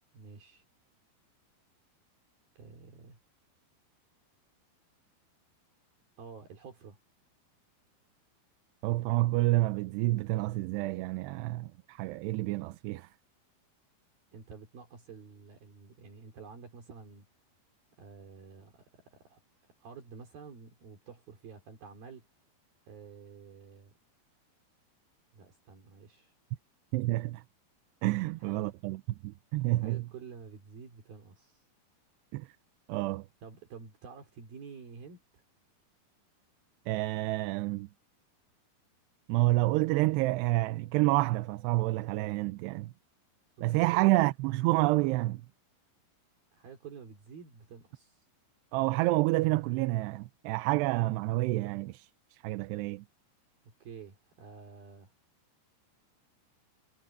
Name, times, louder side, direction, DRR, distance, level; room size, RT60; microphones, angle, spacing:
voice 1, 0.1-0.6 2.6-3.2 6.2-7.0 14.3-17.3 18.0-22.3 22.9-23.9 25.3-26.4 28.2-28.7 29.5-31.6 33.4-35.4 43.6-44.0 46.5-48.3 53.8-55.1, right 5 dB, 60° right, 5.1 m, -50 dB
voice 2, 8.8-13.1 26.9-27.4 28.0-30.0 32.3-32.5 32.9-33.3 36.9-37.9 39.3-42.9 43.6-45.4 48.7-53.0, right 19 dB, 85° right, 2.8 m, -29 dB
omnidirectional pair, 4.8 m